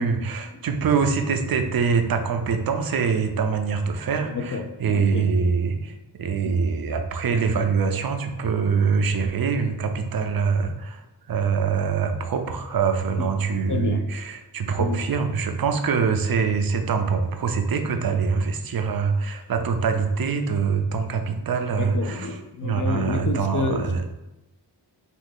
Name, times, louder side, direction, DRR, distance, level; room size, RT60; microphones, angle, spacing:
voice 1, 0.0-5.9 6.2-11.0 11.3-24.0, right 5 dB, 55° right, 6 dB, 0.5 m, -24 dB
voice 2, 4.9-5.3 6.4-6.5 13.2-13.3 13.7-14.0 14.8-15.0 21.8-23.8, left 4 dB, 45° left, 4 dB, 0.5 m, -28 dB
2.7 x 2.5 x 3.7 m, 0.99 s
wide cardioid pair, 60°, 43 cm